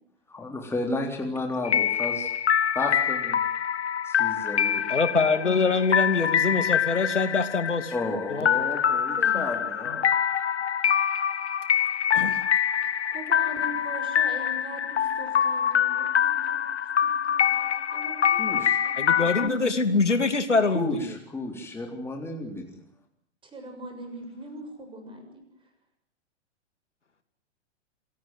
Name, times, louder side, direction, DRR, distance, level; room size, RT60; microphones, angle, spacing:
voice 1, 0.3-2.4 2.7-3.4 4.0-4.9 7.9-10.1 18.3-18.8 20.7-22.7, left 2 dB, 5° left, 2 dB, 3.7 m, -32 dB
sound 1, 1.6-19.5, left 8 dB, 65° left, 1.5 m, -25 dB
voice 2, 4.9-7.9 8.3-8.5 9.2-9.4 9.9-10.0 12.1-12.4 19.0-21.1, left 4 dB, 85° left, 9 dB, 2.8 m, -24 dB
voice 3, 12.8-16.7 17.0-19.1 23.4-25.4, right 1 dB, 15° right, 5 dB, 7.2 m, -42 dB
27.0 x 17.5 x 9.3 m, 0.72 s
figure-of-eight pair, 110°, 35 cm